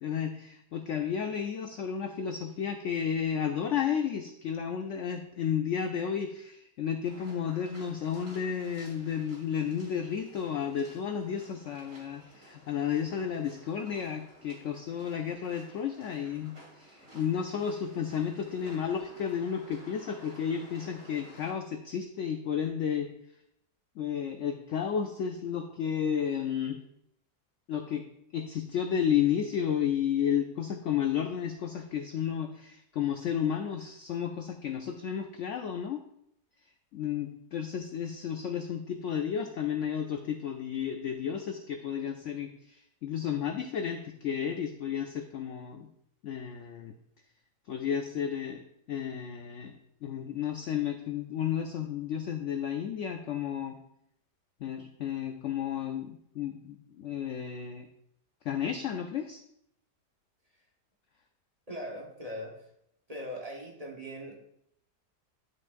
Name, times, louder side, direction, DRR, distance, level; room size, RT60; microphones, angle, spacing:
voice 1, 0.0-23.1 24.0-26.8 27.7-28.0 28.3-36.0 36.9-45.9 46.2-46.9 47.7-49.7 50.0-53.8 54.6-57.9 58.4-59.4, left 8 dB, 75° left, 6 dB, 0.7 m, -32 dB
sound 1, 7.0-21.5, right 1 dB, 60° right, 3.1 m, -54 dB
voice 2, 61.7-62.5 63.1-64.3, equal, 30° right, -1 dB, 0.9 m, -40 dB
10.5 x 6.5 x 2.5 m, 0.76 s
omnidirectional pair, 1.8 m